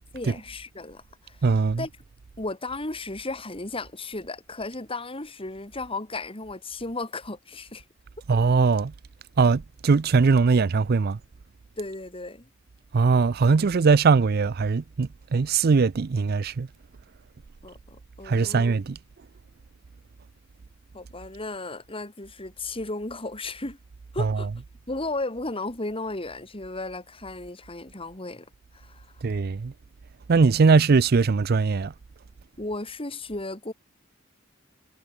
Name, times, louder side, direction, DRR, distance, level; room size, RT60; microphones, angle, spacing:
voice 1, 0.1-1.4 1.8-1.9 2.4-7.8 11.8-12.5 17.6-18.7 20.9-23.8 24.1-24.5 24.9-29.1 32.6-33.7, left 2 dB, 30° left, 3.3 m, -35 dB
voice 2, 1.4-1.9 8.3-8.9 9.4-11.2 12.9-16.7 18.2-19.0 24.2-24.6 29.2-29.7 30.3-31.9, right 4 dB, 50° right, 0.5 m, -21 dB
head